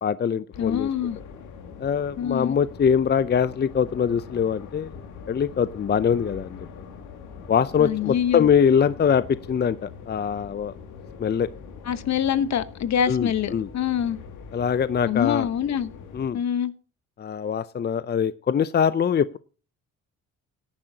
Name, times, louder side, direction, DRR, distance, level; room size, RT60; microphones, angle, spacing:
voice 1, 0.0-0.9 1.8-4.9 5.3-6.6 7.5-10.7 11.2-11.5 13.1-13.7 14.5-15.5 16.1-16.4 17.2-19.4, left 7 dB, 35° left, 15 dB, 0.6 m, -23 dB
sound 1, 0.5-16.3, left 6 dB, 85° left, 2.5 m, -43 dB
voice 2, 0.6-1.2 2.2-2.5 7.8-8.5 11.9-14.2 15.0-15.9 16.3-16.7, left 9 dB, 65° left, 13 dB, 1.2 m, -25 dB
17.5 x 10.0 x 2.9 m, 0.35 s
cardioid pair, 90°, 30 cm